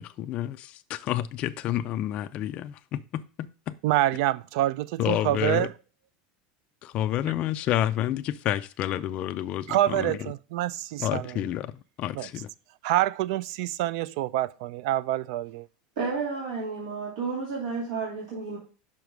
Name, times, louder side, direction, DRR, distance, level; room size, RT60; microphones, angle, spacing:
voice 1, 0.0-3.7 5.0-5.7 6.8-10.2 11.0-12.5, left 12 dB, 30° left, 0.3 m, -29 dB
voice 2, 3.8-4.8 5.1-5.7 9.7-11.4 12.1-12.3 12.8-15.7, right 14 dB, 55° right, 0.4 m, -26 dB
voice 3, 16.0-18.6, right 4 dB, 75° right, 2.6 m, -31 dB
5.8 x 4.7 x 5.1 m
supercardioid pair, 170°, 4 cm